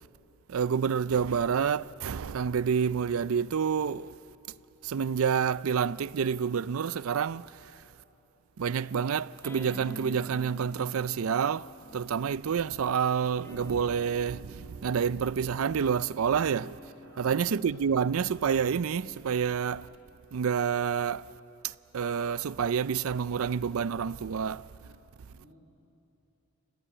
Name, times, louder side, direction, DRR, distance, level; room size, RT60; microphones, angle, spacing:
voice 1, 0.5-4.1 4.8-7.8 8.6-19.9 20.3-21.3 21.6-24.7, right 7 dB, 75° right, 0.4 m, -28 dB
sound 1, 9.4-12.8 13.3-20.1, left 1 dB, 15° left, 0.9 m, -50 dB
voice 2, 17.0-17.4 25.3-25.6, right 2 dB, 55° right, 6.2 m, -53 dB
28.5 x 15.5 x 9.9 m
head